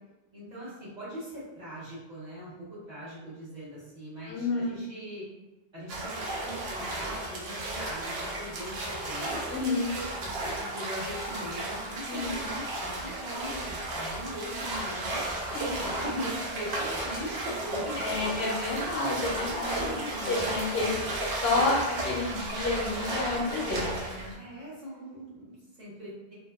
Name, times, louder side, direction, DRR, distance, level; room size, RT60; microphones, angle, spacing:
voice 1, 0.3-5.3 5.7-9.4 10.2-15.2 15.5-18.0 19.6-20.5 24.4-26.4, equal, 45° right, -9 dB, 1.0 m, -40 dB
voice 2, 4.3-4.8 9.5-9.9 12.1-12.4 14.0-14.2 15.5-15.6 18.0-19.9 20.2-21.0 21.4-24.3, left 3 dB, 70° left, -3 dB, 0.8 m, -30 dB
sound 1, 5.9-24.3, right 1 dB, 75° right, 0.8 m, -34 dB
2.6 x 2.1 x 2.3 m, 1.1 s
omnidirectional pair, 1.1 m